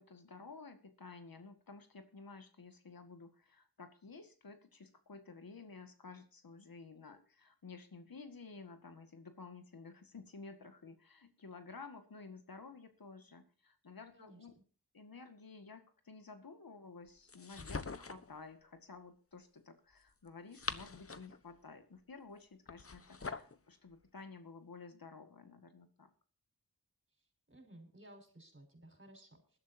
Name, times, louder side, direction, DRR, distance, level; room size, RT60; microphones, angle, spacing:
voice 1, 0.0-14.6 14.9-26.1, left 4 dB, 65° left, 8 dB, 2.0 m, -53 dB
voice 2, 14.1-14.6 27.5-29.6, right 1 dB, 35° right, 5 dB, 5.8 m, -58 dB
sound 1, 17.3-18.3 20.3-21.4 22.7-23.6, left 4 dB, 35° left, 1.1 m, -43 dB
20.5 x 12.0 x 2.8 m, 0.40 s
wide cardioid pair, 55°, 37 cm